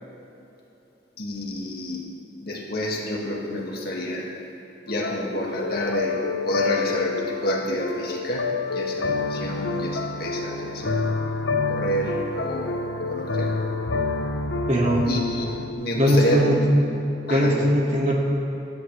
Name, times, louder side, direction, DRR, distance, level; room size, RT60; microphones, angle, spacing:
voice 1, 1.2-2.0 2.4-4.3 4.9-11.0 11.7-13.5 15.1-16.8 17.3-17.7, left 1 dB, 55° left, -2 dB, 2.0 m, -29 dB
sound 1, 4.9-15.7, left 3 dB, 85° left, 0.8 m, -28 dB
voice 2, 14.7-15.1 16.0-16.6 17.3-18.1, equal, 40° right, -3 dB, 2.2 m, -20 dB
17.0 x 13.0 x 3.3 m, 3.0 s
head